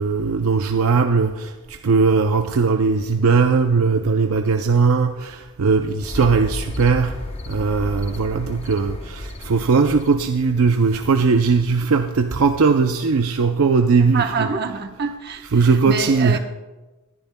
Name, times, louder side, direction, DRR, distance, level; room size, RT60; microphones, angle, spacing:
voice 1, 0.0-7.1 7.5-14.5 15.5-16.4, right 4 dB, 70° right, 6 dB, 0.5 m, -19 dB
sound 1, 6.0-11.0, left 1 dB, 25° left, 0.7 m, -33 dB
voice 2, 14.1-16.4, right 4 dB, 45° right, 6 dB, 0.9 m, -26 dB
21.5 x 10.5 x 2.2 m, 1.1 s
head